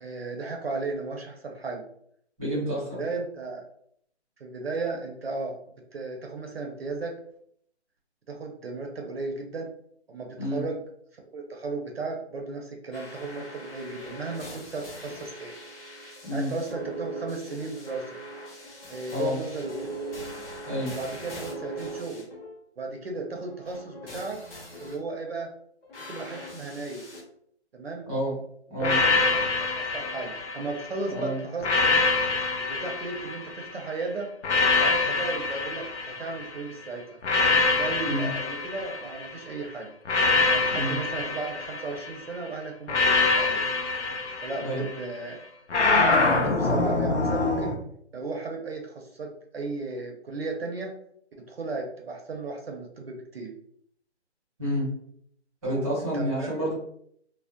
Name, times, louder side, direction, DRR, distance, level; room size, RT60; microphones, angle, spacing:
voice 1, 0.0-1.8 3.0-3.7 4.4-5.6 5.9-7.2 8.3-9.7 10.1-10.8 11.3-15.6 16.3-18.2 18.9-20.0 20.9-22.3 22.8-24.4 24.8-25.5 26.1-27.1 27.7-28.1 28.8-28.9 29.3-31.7 32.6-34.3 34.7-37.2 37.7-39.9 40.5-43.6 44.4-45.4 46.0-47.8 48.1-50.9 51.5-53.5 55.6-56.5, right 3 dB, 60° right, 2 dB, 0.5 m, -35 dB
voice 2, 2.4-3.0 10.4-10.6 16.2-16.5 19.1-19.4 20.7-21.0 28.0-28.4 28.7-29.0 31.1-31.4 38.0-38.3 40.7-41.0 44.6-44.9 54.6-54.9 55.6-56.7, equal, ahead, -10 dB, 0.8 m, -29 dB
sound 1, 12.9-22.6 23.4-25.0 25.8-27.2, right 1 dB, 55° left, 0.9 m, -41 dB
sound 2, 28.8-31.0 31.6-33.8 34.4-36.6 37.2-39.4 40.1-42.2 42.9-45.0 45.7-47.7, left 3 dB, 85° left, 0.6 m, -25 dB
2.4 x 2.0 x 2.5 m, 0.68 s
hypercardioid pair, 165°, 35 cm